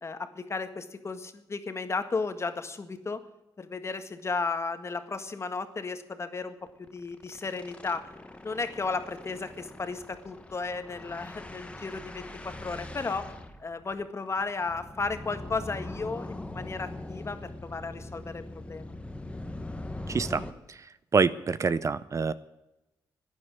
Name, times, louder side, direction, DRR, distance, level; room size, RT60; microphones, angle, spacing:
voice 1, 0.0-3.2 3.6-8.1 8.4-13.3 13.6-18.9, left 4 dB, 35° left, 8 dB, 1.7 m, -34 dB
sound 1, 3.8-4.0 4.3-4.4 4.7-4.9 5.2-5.3 6.7-20.5, left 1 dB, 15° left, 1.5 m, -42 dB
voice 2, 20.1-20.4 21.1-22.3, right 5 dB, 40° right, 16 dB, 0.7 m, -25 dB
12.5 x 9.9 x 9.8 m, 0.93 s
cardioid pair, 75°, 8 cm